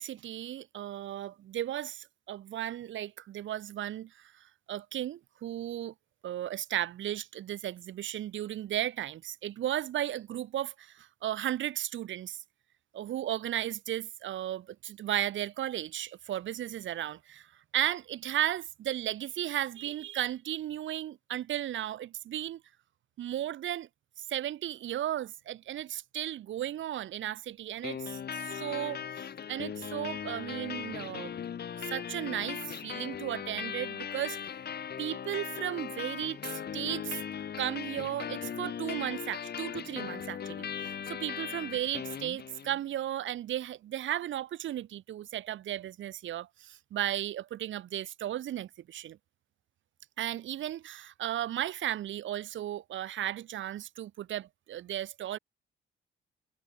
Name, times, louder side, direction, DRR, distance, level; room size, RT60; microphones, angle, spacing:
voice 1, 0.0-5.9 6.2-12.4 12.9-22.6 23.2-23.9 24.2-29.0 29.5-31.3 31.9-34.4 35.0-37.2 37.6-49.2 50.2-55.4, right 12 dB, 75° right, 2.8 m, -35 dB
sound 1, 27.8-42.8, left 8 dB, 55° left, 3.9 m, -39 dB
cardioid pair, 90°, 20 cm